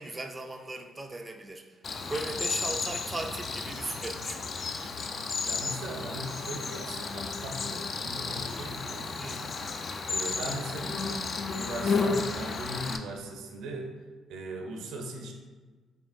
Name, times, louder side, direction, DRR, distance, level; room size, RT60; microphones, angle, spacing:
voice 1, 0.0-1.8 2.1-4.7 9.2-9.5, right 2 dB, 25° right, 4 dB, 0.3 m, -38 dB
Cricket, 1.8-13.0, left 4 dB, 50° left, 0.3 m, -33 dB
voice 2, 5.5-9.5 10.1-11.2 11.5-13.9 14.3-15.3, right 1 dB, 70° right, 2 dB, 0.6 m, -39 dB
4.4 x 3.3 x 2.6 m, 1.4 s
hypercardioid pair, 45°, 0 cm